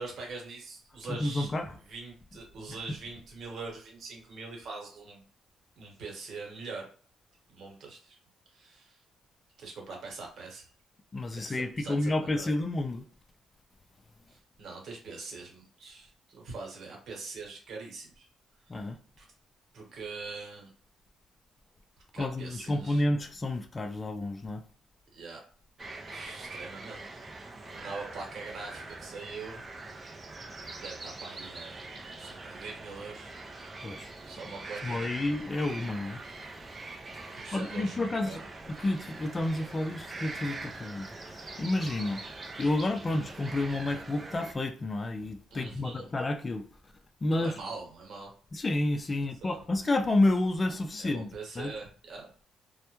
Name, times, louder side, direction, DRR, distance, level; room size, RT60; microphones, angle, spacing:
voice 1, 0.0-1.5 1.9-5.2 5.8-6.9 7.5-8.2 8.5-9.0 9.6-10.7 11.3-12.5 14.3-18.3 18.7-18.8 19.2-19.3 19.7-20.7 22.1-23.0 25.1-25.4 26.1-27.0 27.7-29.6 30.6-33.3 34.2-35.1 37.4-38.5 45.5-46.1 47.4-48.3 49.4-49.6 51.0-52.4, right 4 dB, 60° right, 1.1 m, -43 dB
voice 2, 1.1-1.7 2.7-2.8 11.1-13.0 18.7-19.0 22.2-24.6 33.8-34.1 34.8-36.2 37.1-38.4 38.7-42.2 42.6-46.7 47.2-47.5 48.5-51.7, left 2 dB, 30° left, 0.3 m, -30 dB
sound 1, 25.8-44.5, right 3 dB, 30° right, 0.5 m, -43 dB
2.1 x 2.1 x 2.9 m
cardioid pair, 90°, 0 cm